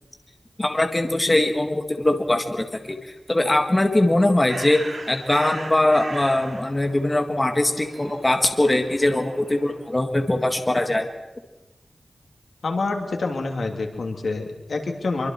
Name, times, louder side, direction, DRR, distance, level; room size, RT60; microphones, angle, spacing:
voice 1, 0.6-11.1, left 1 dB, 25° left, 5 dB, 1.8 m, -21 dB
Bird, 4.0-10.0, right 3 dB, 90° right, 4.2 m, -39 dB
voice 2, 12.6-15.3, left 3 dB, 85° left, 3 dB, 2.8 m, -27 dB
25.0 x 24.0 x 4.5 m, 1.1 s
wide cardioid pair, 95°, 0 cm